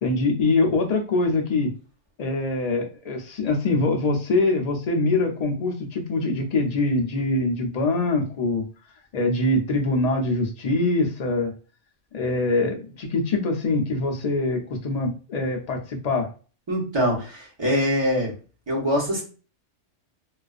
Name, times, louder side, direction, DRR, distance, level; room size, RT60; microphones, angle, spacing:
voice 1, 0.0-1.7 2.2-8.7 9.1-11.5 12.1-16.3, left 2 dB, 80° left, 2 dB, 0.3 m, -23 dB
voice 2, 16.7-18.3 18.7-19.2, equal, 25° right, -4 dB, 1.0 m, -23 dB
2.4 x 2.3 x 2.3 m, 0.36 s
omnidirectional pair, 1.3 m